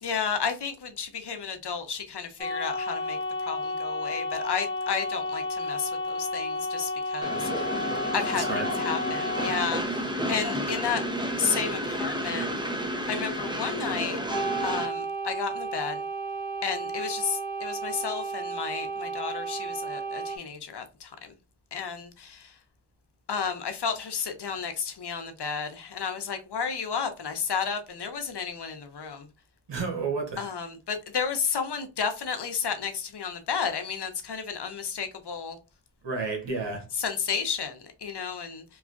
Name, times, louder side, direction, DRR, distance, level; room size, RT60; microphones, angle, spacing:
voice 1, 0.0-7.8 8.1-11.0 11.4-12.5 13.1-14.2 14.6-16.0 16.6-21.3 21.7-22.5 23.3-29.3 30.4-35.6 37.0-38.6, left 6 dB, 70° left, 0.7 m, -32 dB
sound 1, 2.4-9.7 14.3-20.4, equal, 10° left, 1.1 m, -32 dB
Train, 7.2-14.9, equal, 10° right, 0.6 m, -31 dB
voice 2, 8.3-8.7 29.7-30.5 36.0-36.9, right 4 dB, 75° right, 1.1 m, -31 dB
3.0 x 2.4 x 2.4 m
cardioid pair, 40°, 43 cm